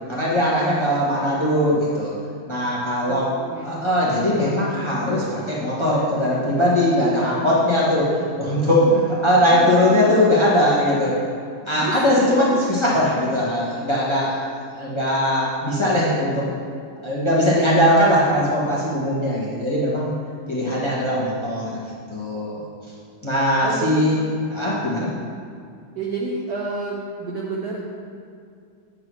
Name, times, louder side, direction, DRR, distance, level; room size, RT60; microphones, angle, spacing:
voice 1, 0.1-2.1 2.5-3.3 3.6-8.8 9.2-11.2 11.7-14.4 14.7-16.5 17.0-20.1 20.5-21.8 22.1-22.6 23.2-24.2 24.5-25.1, left 1 dB, 15° left, -7 dB, 1.2 m, -20 dB
voice 2, 3.0-3.6 8.8-9.0 9.5-10.2 11.7-12.6 20.6-21.0 23.6-24.0 25.9-27.9, right 3 dB, 65° right, -3 dB, 1.0 m, -30 dB
8.6 x 3.9 x 6.2 m, 2.3 s
omnidirectional pair, 2.2 m